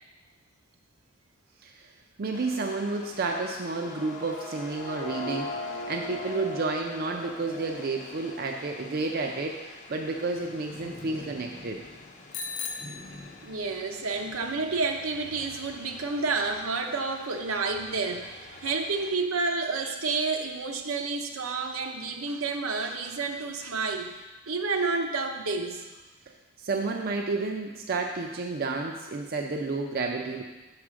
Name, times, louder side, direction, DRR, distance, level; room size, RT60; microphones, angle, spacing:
voice 1, 2.2-11.8 26.6-30.4, right 3 dB, 45° right, 2 dB, 0.5 m, -31 dB
sound 1, 2.3-19.2, left 2 dB, 35° left, 0.7 m, -48 dB
sound 2, 3.5-9.5, left 1 dB, 55° left, 0.9 m, -39 dB
Bicycle bell, 12.3-13.9, left 5 dB, 80° left, 0.7 m, -38 dB
voice 2, 13.4-24.1 24.5-25.8, right 4 dB, 75° right, 3 dB, 0.8 m, -30 dB
6.5 x 4.8 x 6.1 m, 1.2 s
head